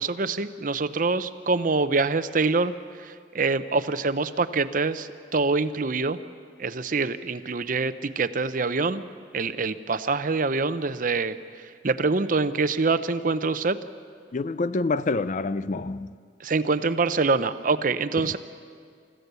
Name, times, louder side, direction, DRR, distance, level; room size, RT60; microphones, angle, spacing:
voice 1, 0.0-2.7 3.0-6.2 6.6-9.0 9.3-11.4 11.8-13.8 16.4-18.4, right 3 dB, 45° right, 0.7 m, -25 dB
voice 2, 14.3-16.1 18.2-18.3, left 3 dB, 40° left, 0.4 m, -27 dB
28.5 x 15.0 x 6.9 m
head